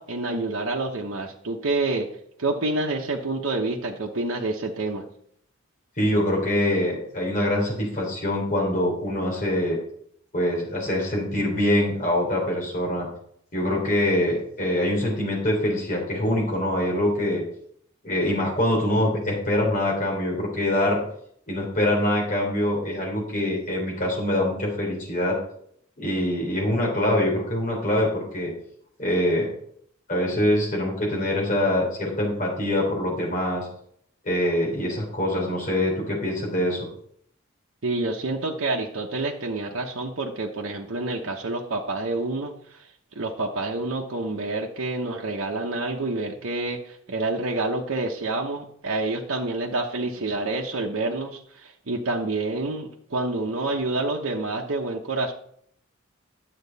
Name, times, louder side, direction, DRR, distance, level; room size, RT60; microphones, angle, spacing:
voice 1, 0.0-2.1 2.4-5.0 37.8-42.9 43.1-55.3, right 2 dB, 70° right, -1 dB, 0.9 m, -28 dB
voice 2, 6.0-9.8 10.3-13.1 13.5-17.4 18.0-21.0 21.5-25.4 26.0-28.5 29.0-29.5 30.1-33.7 34.2-36.9, left 1 dB, 40° left, -1 dB, 3.6 m, -24 dB
10.5 x 7.6 x 4.1 m, 0.66 s
head